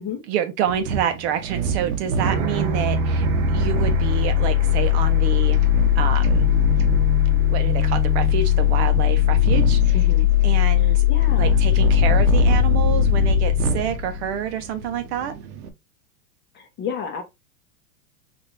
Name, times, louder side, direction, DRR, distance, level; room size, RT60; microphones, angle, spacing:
voice 1, 0.3-5.6 5.9-6.5 7.5-10.0 10.4-11.0 11.4-15.3, right 9 dB, 50° right, 0.8 m, -27 dB
sound 1, 0.7-15.7, right 8 dB, 80° right, 1.0 m, -28 dB
sound 2, 2.2-14.9, left 10 dB, 25° right, 0.4 m, -19 dB
voice 2, 9.9-10.3 10.8-11.6 16.5-17.2, left 6 dB, 25° left, 0.8 m, -32 dB
4.2 x 2.6 x 3.1 m
supercardioid pair, 135°, 44 cm